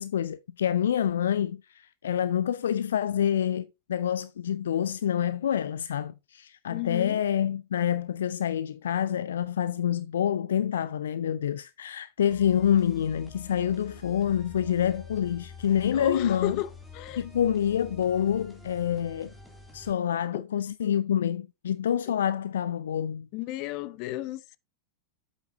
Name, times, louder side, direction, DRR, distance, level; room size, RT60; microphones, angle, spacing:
voice 1, 0.0-16.6 17.2-19.3 19.7-23.3, left 9 dB, 65° left, 0.3 m, -27 dB
voice 2, 6.7-7.2 15.9-17.2 23.3-24.6, left 16 dB, 45° left, 0.7 m, -33 dB
sound 1, 12.3-19.9, left 4 dB, 5° left, 2.8 m, -47 dB
8.3 x 8.0 x 2.6 m
figure-of-eight pair, 90°, 0 cm